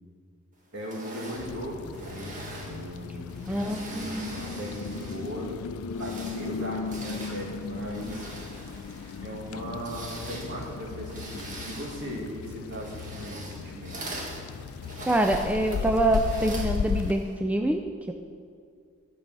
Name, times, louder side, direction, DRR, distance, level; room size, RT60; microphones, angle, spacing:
voice 1, 0.7-5.5 6.0-8.3 9.2-14.1, equal, 60° right, -2 dB, 2.3 m, -38 dB
sound 1, 0.8-5.4 5.8-17.3, right 2 dB, 40° right, 1.8 m, -43 dB
sound 2, 1.4-17.1, left 6 dB, 85° left, 0.4 m, -36 dB
voice 2, 3.5-4.4 15.0-18.1, right 1 dB, 5° right, 4 dB, 0.4 m, -26 dB
12.0 x 5.4 x 7.5 m, 2.2 s
head